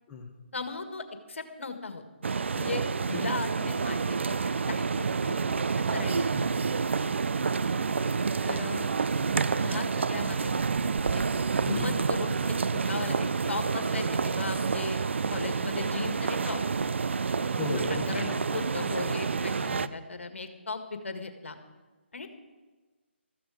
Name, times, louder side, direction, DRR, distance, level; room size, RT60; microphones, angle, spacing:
voice 1, 0.5-2.0 2.5-5.6 5.9-6.2 8.4-8.9 9.6-10.5 11.1-11.2 11.6-15.0 15.3-16.6 18.1-21.6 22.1-22.3, left 3 dB, 80° left, 8 dB, 1.8 m, -37 dB
sound 1, 2.2-19.9, right 5 dB, 70° right, 0.6 m, -28 dB
voice 2, 6.3-6.7 9.0-9.2 11.6-11.9 17.3-18.5 19.6-19.9, left 3 dB, 15° left, -1 dB, 1.6 m, -37 dB
15.0 x 14.0 x 5.0 m, 1.3 s
hypercardioid pair, 160°, 7 cm